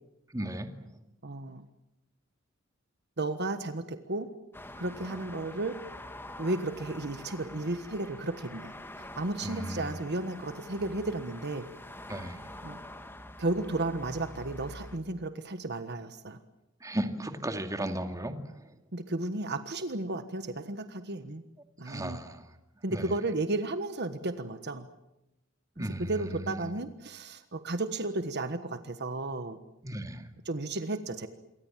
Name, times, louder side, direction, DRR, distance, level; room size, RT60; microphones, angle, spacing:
voice 1, 0.3-0.7 9.4-10.0 12.1-12.4 16.8-18.3 21.8-22.4 22.9-23.1 25.8-26.6 29.8-30.2, right 1 dB, 15° right, 6 dB, 2.4 m, -35 dB
voice 2, 1.2-1.6 3.2-4.3 4.8-5.8 6.4-11.7 12.6-12.8 13.4-16.4 18.9-21.4 21.8-22.2 22.8-24.9 25.8-29.6 30.4-31.3, right 2 dB, 55° right, 10 dB, 1.4 m, -33 dB
sound 1, 4.5-15.0, left 1 dB, 10° left, 2.1 m, -46 dB
27.5 x 24.0 x 7.5 m, 0.89 s
head